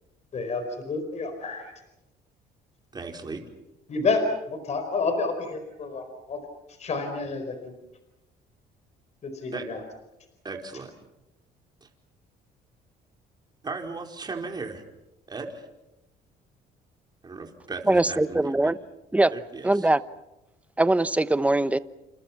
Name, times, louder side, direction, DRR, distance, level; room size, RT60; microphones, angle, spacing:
voice 1, 0.3-1.7 3.9-6.4 6.8-7.7 9.2-9.8, left 3 dB, 40° left, 6 dB, 4.8 m, -29 dB
voice 2, 2.9-3.5 9.5-9.6 10.4-10.9 11.8-11.9 13.6-14.8 15.3-15.7 17.2-18.7 19.3-19.9, right 4 dB, 25° right, 2 dB, 4.7 m, -36 dB
voice 3, 17.9-18.8 19.1-19.3 19.6-20.0 20.8-21.8, right 2 dB, 10° right, 14 dB, 0.9 m, -21 dB
29.5 x 28.0 x 6.0 m, 0.95 s
cardioid pair, 110°, 17 cm